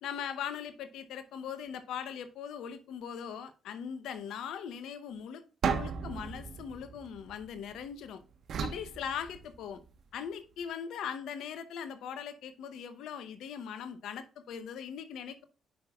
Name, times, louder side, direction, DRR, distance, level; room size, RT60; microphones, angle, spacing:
voice 1, 0.0-8.2 8.6-9.8 10.1-15.4, left 8 dB, 70° left, 0.8 m, -40 dB
sound 1, 5.6-7.8 8.5-9.9, right 6 dB, 60° right, 1.1 m, -35 dB
9.4 x 5.8 x 2.4 m
hypercardioid pair, 50°, 0 cm